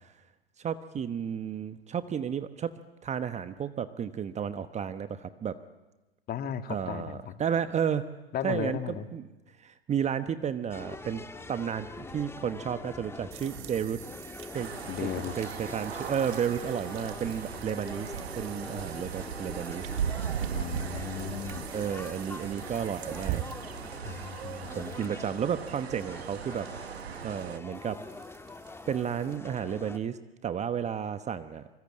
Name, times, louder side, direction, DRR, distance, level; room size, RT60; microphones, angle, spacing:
voice 1, 0.6-5.6 6.7-8.1 8.4-9.2 9.6-11.2 11.5-14.0 14.5-14.7 15.0-15.1 15.4-19.9 21.7-23.4 24.7-26.7 27.2-28.0 28.9-31.8, right 8 dB, 20° right, 11 dB, 1.1 m, -32 dB
voice 2, 6.3-7.3 8.3-9.1 14.9-15.3 20.5-21.7 24.0-25.2, left 9 dB, 30° left, 9 dB, 1.9 m, -36 dB
sound 1, 10.7-30.0, left 3 dB, 10° left, 1.6 m, -44 dB
sound 2, 13.3-29.4, right 14 dB, 45° right, 2.0 m, -45 dB
sound 3, 14.5-27.6, right 8 dB, 85° right, 1.5 m, -38 dB
25.5 x 24.5 x 8.8 m, 1.1 s
hypercardioid pair, 105°, 31 cm